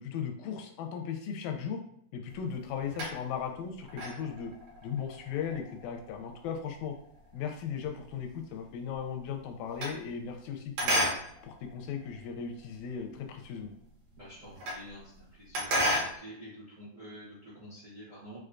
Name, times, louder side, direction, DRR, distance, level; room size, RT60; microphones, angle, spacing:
voice 1, 0.0-1.8 2.1-4.5 4.8-7.0 7.3-11.1 11.4-13.7, left 7 dB, 85° left, 4 dB, 1.9 m, -37 dB
sound 1, 2.3-3.5 3.9-8.4 8.7-10.5 10.8-12.8 13.3-13.4 13.6-13.7 13.9-14.9 15.2-16.2, equal, 70° right, 2.1 m, -34 dB
voice 2, 14.2-15.8 16.2-18.4, equal, 90° right, -9 dB, 0.7 m, -48 dB
4.8 x 2.2 x 2.5 m, 0.69 s
omnidirectional pair, 3.4 m